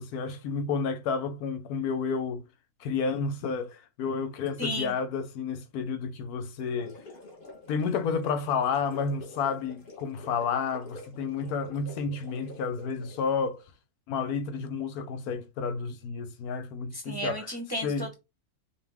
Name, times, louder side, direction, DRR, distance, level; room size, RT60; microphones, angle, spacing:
voice 1, 0.0-2.4 2.8-7.0 7.7-13.6 14.1-17.5 17.8-18.1, left 5 dB, 80° left, 1.1 m, -31 dB
voice 2, 4.6-4.9 16.9-18.1, equal, 20° right, 0.8 m, -33 dB
sound 1, 6.6-13.4, left 2 dB, 40° left, 1.2 m, -48 dB
5.4 x 2.3 x 3.4 m
omnidirectional pair, 1.6 m